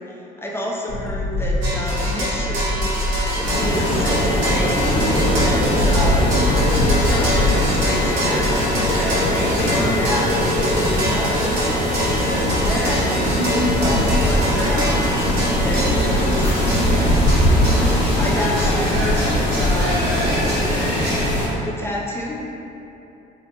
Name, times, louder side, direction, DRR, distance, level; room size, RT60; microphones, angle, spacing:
voice 1, 0.1-3.0 3.3-5.1 5.4-6.3 6.9-11.6 11.9-13.3 13.6-15.2 15.6-17.5 18.2-20.1 21.6-22.3, left 1 dB, 10° left, -3 dB, 0.4 m, -29 dB
sound 1, 0.9-7.8, left 2 dB, 35° left, 0.9 m, -25 dB
sound 2, 1.6-21.3, right 1 dB, 60° right, 1.0 m, -26 dB
sound 3, 3.4-21.5, left 1 dB, 65° left, 0.7 m, -20 dB
2.8 x 2.1 x 2.9 m, 2.9 s
supercardioid pair, 75°, 20 cm